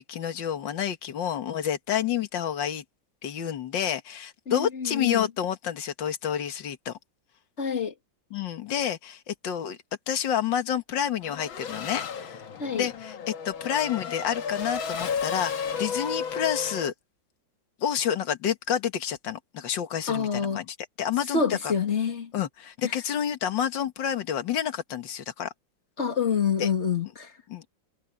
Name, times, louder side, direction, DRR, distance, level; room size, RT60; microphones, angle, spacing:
voice 1, 0.0-2.8 3.2-6.9 8.3-9.8 10.1-12.4 12.7-16.9 17.8-21.7 22.3-25.5 26.6-26.7 27.5-27.7, left 9 dB, 70° left, 2.1 m, -29 dB
voice 2, 4.5-5.3 7.6-7.9 12.6-12.9 20.1-20.6 21.3-22.3 26.0-27.3, left 6 dB, 35° left, 2.4 m, -27 dB
Race car auto racing / Accelerating revving vroom, 11.2-16.9, left 6 dB, 85° left, 2.3 m, -33 dB
omnidirectional pair, 2.1 m